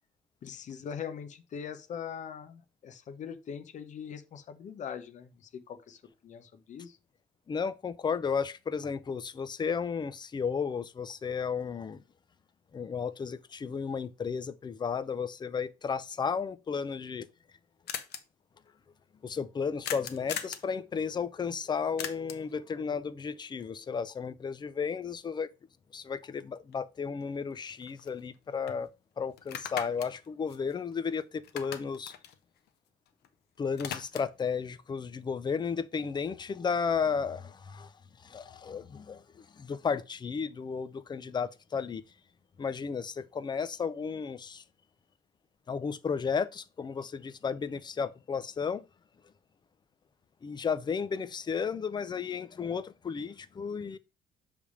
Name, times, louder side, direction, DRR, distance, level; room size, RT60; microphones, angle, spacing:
voice 1, 0.4-6.0 6.2-7.0, left 7 dB, 45° left, 0.9 m, -42 dB
voice 2, 7.5-12.0 12.7-17.3 19.2-25.5 25.9-28.9 29.2-32.1 33.6-37.9 38.2-42.0 42.6-44.6 45.7-48.8 50.4-54.0, left 6 dB, 25° left, 0.6 m, -33 dB
sound 1, 17.2-17.3 17.5-17.6 17.9-18.2 19.8-20.7 22.0-22.5 26.7-26.8 27.2-28.4 28.7-28.8 29.4-31.2 31.4-33.3 33.6-34.4, left 9 dB, 75° left, 1.0 m, -40 dB
6.8 x 3.5 x 4.9 m
cardioid pair, 110°, 17 cm